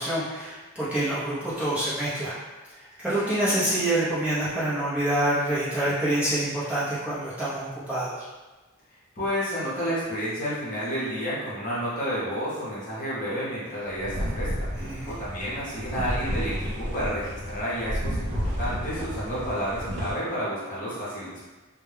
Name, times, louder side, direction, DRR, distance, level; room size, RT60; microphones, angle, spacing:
voice 1, 0.0-2.3 3.0-8.2 14.8-15.1, right 1 dB, 5° right, -12 dB, 0.6 m, -26 dB
voice 2, 9.2-21.5, equal, 35° left, -8 dB, 0.8 m, -31 dB
sound 1, 13.9-20.1, equal, 55° right, 0.5 m, -31 dB
2.2 x 2.1 x 3.2 m, 1.2 s
head